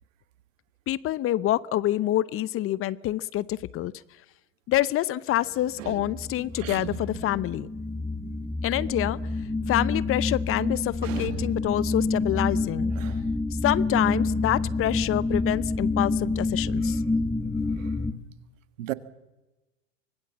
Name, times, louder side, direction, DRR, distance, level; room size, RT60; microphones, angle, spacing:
voice 1, 0.9-3.9 4.7-7.7 8.6-9.2 9.7-12.9 13.6-17.0, left 14 dB, 35° left, 0.7 m, -26 dB
sound 1, 5.6-18.1, left 3 dB, 10° left, 1.8 m, -28 dB
voice 2, 5.8-6.1 6.6-7.0 11.0-11.5 13.0-13.2 18.8-18.9, right 14 dB, 75° right, 1.6 m, -35 dB
25.0 x 19.5 x 7.3 m
hypercardioid pair, 105°, 39 cm